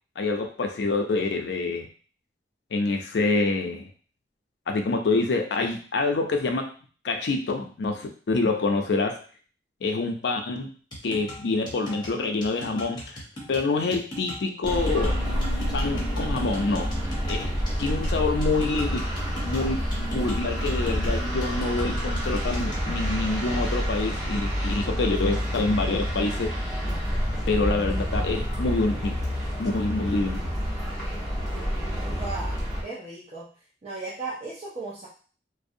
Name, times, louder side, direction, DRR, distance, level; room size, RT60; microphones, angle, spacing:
voice 1, 0.2-1.9 2.7-3.9 4.7-6.7 7.0-9.2 9.8-10.7 11.0-13.2 13.5-15.2 15.7-16.9 17.3-17.5 17.8-19.8 20.1-26.5 27.5-29.2 29.6-30.4, left 3 dB, 70° left, 4 dB, 0.4 m, -26 dB
sound 1, 10.9-22.9, equal, 25° left, 0.7 m, -40 dB
sound 2, 14.6-32.8, equal, ahead, 0.9 m, -28 dB
voice 2, 32.2-32.6 32.8-33.5 33.8-35.1, right 3 dB, 35° right, -8 dB, 0.5 m, -35 dB
2.5 x 2.0 x 2.6 m, 0.41 s
head